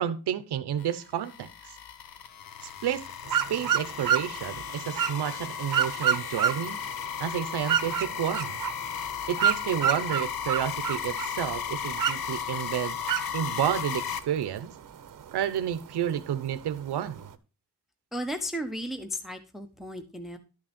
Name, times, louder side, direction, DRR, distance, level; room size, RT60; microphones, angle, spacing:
voice 1, 0.0-1.8 2.6-6.8 7.2-8.6 9.3-13.0 13.3-14.7 15.3-17.3, right 10 dB, 80° right, 0.9 m, -31 dB
sound 1, 0.8-14.2, left 8 dB, 65° left, 1.1 m, -35 dB
sound 2, 3.2-17.3, right 8 dB, 55° right, 0.9 m, -31 dB
voice 2, 18.1-20.4, equal, ahead, 0.7 m, -34 dB
12.0 x 6.4 x 4.3 m
wide cardioid pair, 140°, 39 cm